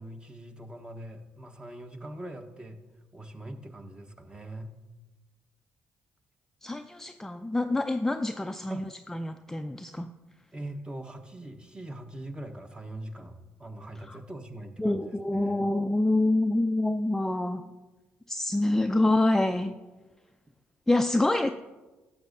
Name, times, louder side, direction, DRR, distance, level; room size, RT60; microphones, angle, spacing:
voice 1, 0.0-2.8 3.1-4.7 8.7-8.9 10.5-15.7, right 1 dB, 15° right, 6 dB, 1.0 m, -42 dB
voice 2, 6.6-8.8 9.1-10.1 14.1-14.2 14.8-17.6 18.3-19.7 20.9-21.5, left 2 dB, 10° left, 7 dB, 0.4 m, -26 dB
12.0 x 7.2 x 2.6 m, 1.2 s
hypercardioid pair, 55°, 6 cm